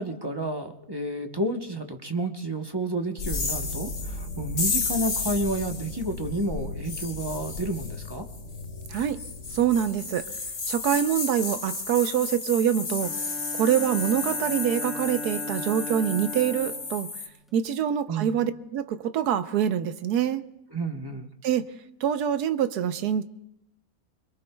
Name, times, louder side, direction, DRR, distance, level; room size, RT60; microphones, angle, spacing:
voice 1, 0.0-8.2 18.1-18.3 20.7-21.3, right 1 dB, 20° right, 4 dB, 0.7 m, -30 dB
sound 1, 3.2-17.3, left 4 dB, 65° left, 2.2 m, -33 dB
voice 2, 8.9-9.2 9.5-10.3 10.7-13.1 13.5-17.1 17.5-20.4 21.4-21.6 22.0-23.2, right 9 dB, 85° right, 11 dB, 1.3 m, -25 dB
Bowed string instrument, 13.0-17.6, left 2 dB, ahead, 0.3 m, -38 dB
26.0 x 22.5 x 2.3 m, 0.83 s
omnidirectional pair, 1.6 m